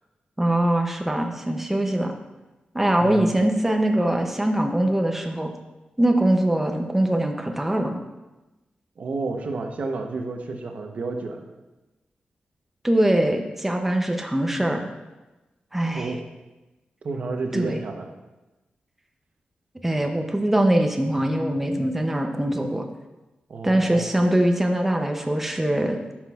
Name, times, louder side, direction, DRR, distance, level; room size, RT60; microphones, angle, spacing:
voice 1, 0.4-2.1 2.7-5.5 6.0-8.0 12.8-14.9 15.7-16.1 17.5-17.8 19.8-22.8 23.6-26.0, right 1 dB, 10° right, 3 dB, 0.5 m, -22 dB
voice 2, 3.0-3.3 9.0-11.5 15.9-16.2 17.0-18.2 23.5-24.1, right 3 dB, 55° right, 4 dB, 0.8 m, -31 dB
11.0 x 6.0 x 2.3 m, 1.1 s
wide cardioid pair, 150°, 3 cm